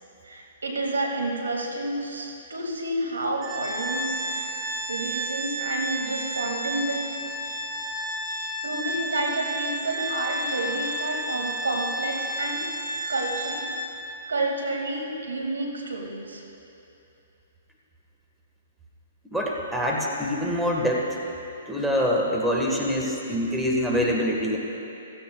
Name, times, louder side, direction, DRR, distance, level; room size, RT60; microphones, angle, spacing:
voice 1, 0.2-7.0 8.6-12.7 13.1-13.7 14.3-16.4, right 2 dB, 90° right, 1 dB, 2.0 m, -30 dB
Organ, 3.4-14.1, right 1 dB, 25° right, 2.5 m, -31 dB
voice 2, 19.3-21.1 21.7-24.6, equal, ahead, -3 dB, 1.4 m, -25 dB
16.0 x 15.5 x 2.3 m, 2.8 s
hypercardioid pair, 130°, 0 cm